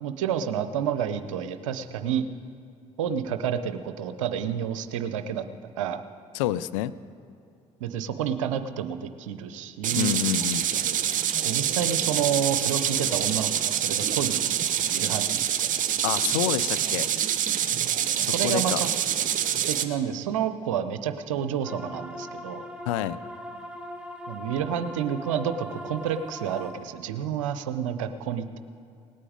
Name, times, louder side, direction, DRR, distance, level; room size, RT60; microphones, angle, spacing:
voice 1, 0.0-2.2 3.0-6.0 7.8-10.1 11.4-15.5 18.1-18.9 19.7-22.7 24.3-28.6, right 8 dB, 85° right, 10 dB, 0.6 m, -29 dB
voice 2, 6.3-6.9 10.0-10.7 16.0-17.1 18.2-18.8 22.9-23.2, left 13 dB, 85° left, 15 dB, 0.4 m, -28 dB
sound 1, 9.8-19.8, right 10 dB, 55° right, 0.9 m, -26 dB
sound 2, 21.6-26.7, left 1 dB, 5° right, 1.7 m, -39 dB
18.5 x 8.6 x 5.1 m, 2.6 s
hypercardioid pair, 55°, 16 cm